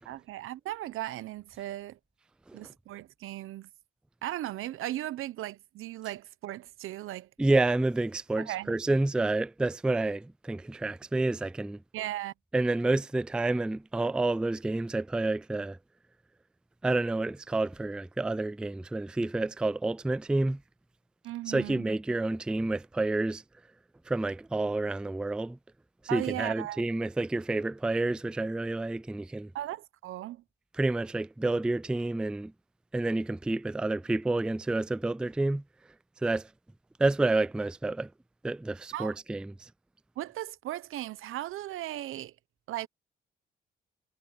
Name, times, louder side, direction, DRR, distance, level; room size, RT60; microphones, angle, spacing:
voice 1, 0.0-2.0 2.5-3.7 4.2-7.3 8.4-8.7 11.9-12.3 21.2-21.9 26.1-26.9 29.5-30.4 38.9-39.2 40.2-42.3 42.7-42.9, right 14 dB, 80° right, 0.9 m, -37 dB
voice 2, 7.4-11.8 12.5-15.8 16.8-20.6 21.5-23.4 24.1-25.6 26.1-29.5 30.8-32.5 32.9-35.6 36.2-36.5 37.0-38.1 38.4-39.7, right 2 dB, 5° right, 0.3 m, -29 dB
supercardioid pair, 65°, 21 cm